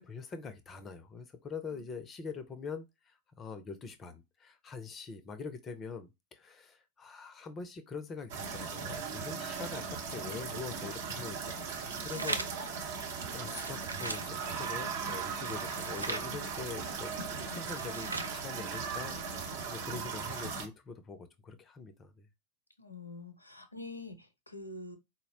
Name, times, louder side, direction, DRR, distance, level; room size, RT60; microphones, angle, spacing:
voice 1, 0.0-12.4 13.3-22.3, left 5 dB, 25° left, 0.4 m, -44 dB
sound 1, 8.3-20.7, right 5 dB, 55° right, 0.8 m, -38 dB
sound 2, 11.7-12.7 13.4-14.3 15.4-16.3 17.5-18.4, right 3 dB, 80° right, 0.4 m, -39 dB
voice 2, 12.1-12.5 22.8-25.0, left 2 dB, 80° left, 0.5 m, -46 dB
4.0 x 2.0 x 2.6 m
figure-of-eight pair, 90°, 0 cm